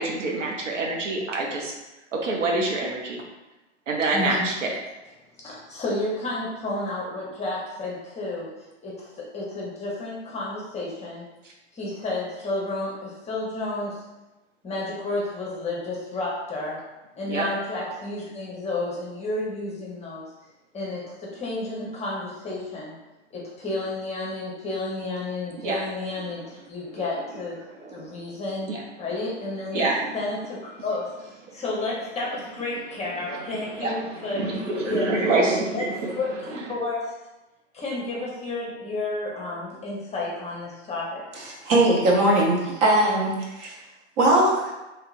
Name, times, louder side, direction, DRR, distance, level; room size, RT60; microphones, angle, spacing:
voice 1, 0.0-1.7 2.1-3.2 3.9-4.7 17.3-17.5 25.6-25.8 26.9-27.0 27.6-28.3 28.7-28.8 29.7-30.1 31.5-31.6 33.3-36.2 36.5-36.6, right 2 dB, 85° right, 0 dB, 0.7 m, -27 dB
voice 2, 4.1-4.5 5.4-8.5 8.8-11.3 11.7-14.0 14.6-16.8 17.1-20.2 20.7-22.9 23.3-27.6 27.9-28.7 29.0-29.9 30.1-35.0 35.7-37.1 37.7-41.2, left 2 dB, 20° left, -4 dB, 0.9 m, -31 dB
voice 3, 41.6-43.3 43.6-43.7 44.2-44.7, right 1 dB, 45° right, -2 dB, 1.0 m, -19 dB
3.0 x 2.8 x 2.5 m, 1.0 s
hypercardioid pair, 95°, 36 cm